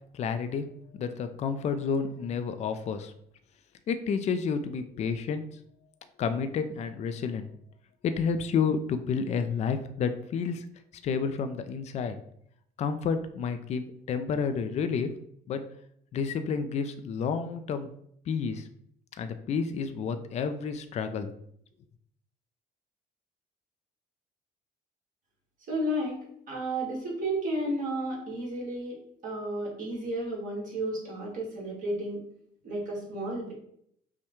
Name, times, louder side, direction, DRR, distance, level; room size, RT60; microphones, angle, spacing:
voice 1, 0.1-3.1 3.9-5.6 6.2-7.5 8.0-10.7 11.0-12.2 12.8-15.1 15.5-15.6 16.1-17.9 18.3-18.7 19.2-21.3, left 6 dB, 40° left, 9 dB, 0.4 m, -30 dB
voice 2, 25.7-29.0 29.2-32.2 32.6-33.5, right 1 dB, 50° right, -4 dB, 1.6 m, -32 dB
5.5 x 2.2 x 3.0 m, 0.69 s
cardioid pair, 110°, 17 cm